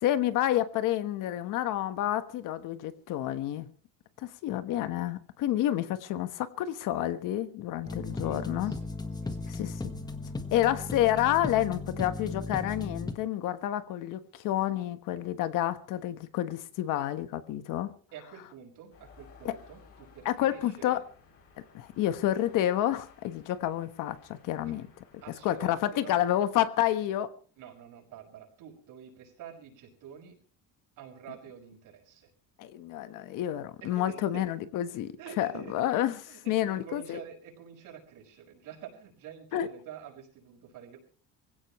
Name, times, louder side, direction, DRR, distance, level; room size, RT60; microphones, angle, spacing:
voice 1, 0.0-3.7 4.2-8.7 9.5-10.0 10.5-17.9 19.4-19.5 20.2-21.0 21.7-24.8 25.4-27.3 32.6-36.1 36.5-37.2 39.5-39.7, left 12 dB, 60° left, 1.3 m, -29 dB
sound 1, 7.8-13.1, left 3 dB, 10° left, 1.4 m, -36 dB
voice 2, 7.8-8.9 9.2-9.9 18.1-21.0 24.6-24.8 25.2-26.2 27.6-30.4 31.0-32.3 33.8-34.6 34.9-35.9 36.2-41.0, right 8 dB, 65° right, 6.3 m, -48 dB
sound 2, 18.9-25.9, left 5 dB, 40° left, 6.7 m, -57 dB
25.0 x 16.5 x 3.1 m
cardioid pair, 165°, 35 cm